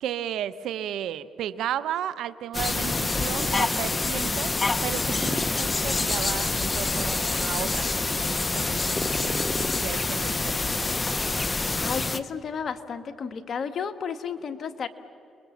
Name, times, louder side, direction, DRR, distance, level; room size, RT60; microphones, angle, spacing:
voice 1, 0.0-4.5 4.8-10.9, right 10 dB, 80° right, 14 dB, 0.9 m, -34 dB
sound 1, 2.5-12.2, left 3 dB, 25° left, 1.0 m, -26 dB
voice 2, 11.8-14.9, left 6 dB, 55° left, 8 dB, 1.5 m, -32 dB
29.5 x 22.0 x 7.3 m, 2.8 s
cardioid pair, 90°, 0 cm